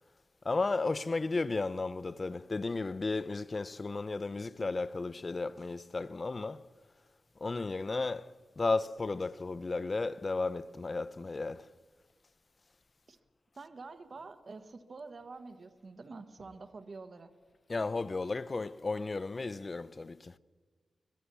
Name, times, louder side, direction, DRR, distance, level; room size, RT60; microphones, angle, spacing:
voice 1, 0.4-6.7 7.4-11.7 17.7-20.4, left 3 dB, 35° left, 0.7 m, -34 dB
voice 2, 13.6-17.3, right 3 dB, 50° right, 1.3 m, -47 dB
24.0 x 18.5 x 7.0 m
wide cardioid pair, 95°, 0 cm